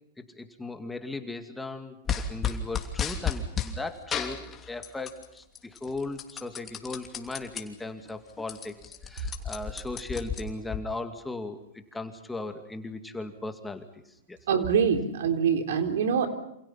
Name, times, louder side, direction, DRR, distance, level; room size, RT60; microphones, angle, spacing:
voice 1, 0.2-4.4 4.7-8.7 9.0-13.9 14.3-14.4, left 2 dB, 10° left, 6 dB, 2.4 m, -37 dB
sound 1, 2.1-3.7 4.1-5.2 5.6-7.6 8.1-8.2 8.4-10.8, left 7 dB, 25° left, 3.0 m, -32 dB
voice 2, 14.5-16.3, right 7 dB, 75° right, 5 dB, 3.7 m, -24 dB
28.0 x 27.5 x 5.8 m, 0.78 s
hypercardioid pair, 125°, 0 cm